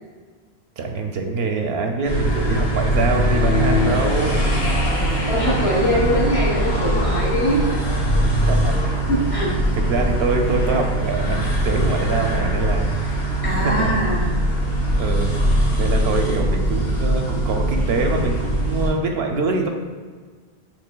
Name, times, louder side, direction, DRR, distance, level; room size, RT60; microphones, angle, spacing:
voice 1, 0.8-4.4 5.0-5.1 8.5-8.9 9.3-9.4 9.7-14.0 15.0-15.3 15.8-19.7, right 3 dB, 80° right, 3 dB, 0.8 m, -24 dB
sound 1, 2.0-18.9, right 1 dB, 70° left, 1.7 m, -21 dB
voice 2, 5.3-7.6 9.1-9.5 13.4-14.3, equal, 35° left, -5 dB, 1.1 m, -22 dB
6.5 x 3.2 x 2.2 m, 1.5 s
omnidirectional pair, 1.1 m